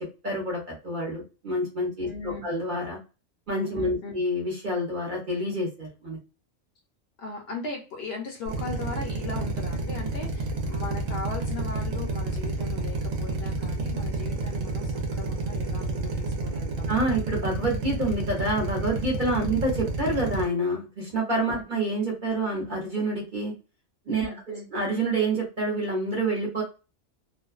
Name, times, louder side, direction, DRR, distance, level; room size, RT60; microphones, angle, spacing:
voice 1, 0.2-3.0 3.5-6.2 16.9-23.5 24.1-26.6, right 1 dB, 45° right, -2 dB, 0.8 m, -28 dB
voice 2, 2.0-2.4 3.7-4.1 7.2-16.9 19.3-19.5 21.5-21.6 24.2-24.7, left 3 dB, 60° left, 2 dB, 0.8 m, -38 dB
Drill, 8.5-20.4, right 2 dB, 85° right, 1.0 m, -30 dB
2.5 x 2.2 x 2.3 m, 0.32 s
omnidirectional pair, 1.3 m